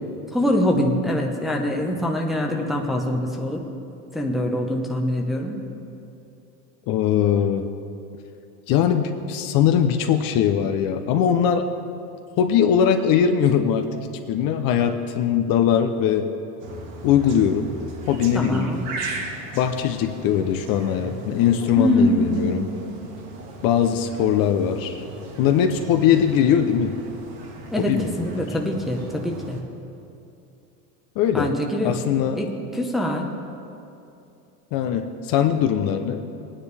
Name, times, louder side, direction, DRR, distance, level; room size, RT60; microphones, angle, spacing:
voice 1, 0.3-3.6 4.1-5.6 18.3-18.9 21.8-22.6 27.7-29.6 31.3-32.0 32.3-33.3, equal, ahead, 0 dB, 0.9 m, -24 dB
voice 2, 6.9-7.7 8.7-11.7 12.4-13.9 14.3-16.3 17.0-17.7 18.1-18.7 19.5-22.7 23.6-25.0 25.4-26.9 27.8-28.5 31.2-31.5 31.8-32.4 34.7-36.2, left 8 dB, 45° left, 6 dB, 0.7 m, -21 dB
sound 1, 16.6-29.6, right 2 dB, 60° right, 1.8 m, -37 dB
18.5 x 9.7 x 3.4 m, 2.7 s
supercardioid pair, 130°, 47 cm